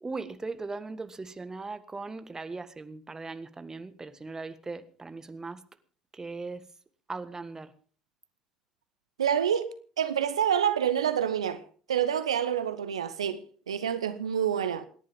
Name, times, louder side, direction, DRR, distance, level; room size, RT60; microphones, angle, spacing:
voice 1, 0.0-5.6 6.1-6.7 7.1-7.7, right 3 dB, 20° right, 1.7 m, -39 dB
voice 2, 9.2-9.7 10.0-11.6 11.9-14.9, right 9 dB, 80° right, 0.9 m, -27 dB
27.5 x 10.5 x 3.7 m
figure-of-eight pair, 60°, 3 cm